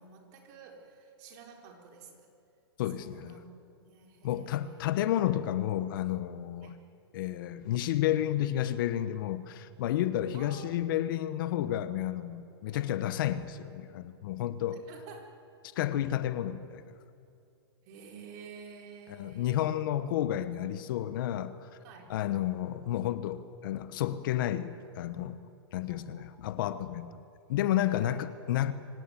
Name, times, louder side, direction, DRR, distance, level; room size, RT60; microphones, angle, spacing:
voice 1, 0.0-2.3 2.9-4.9 6.6-6.8 10.3-10.8 12.7-12.9 14.7-15.3 17.8-19.7 21.8-22.2 25.8-26.3 27.9-28.2, right 5 dB, 45° right, 4.3 m, -51 dB
voice 2, 2.8-3.3 4.2-6.8 7.1-14.8 15.7-16.9 19.2-21.7 22.1-25.4 25.7-27.2 27.5-28.7, left 12 dB, 50° left, 1.1 m, -31 dB
25.0 x 17.0 x 9.2 m
hypercardioid pair, 145°, 14 cm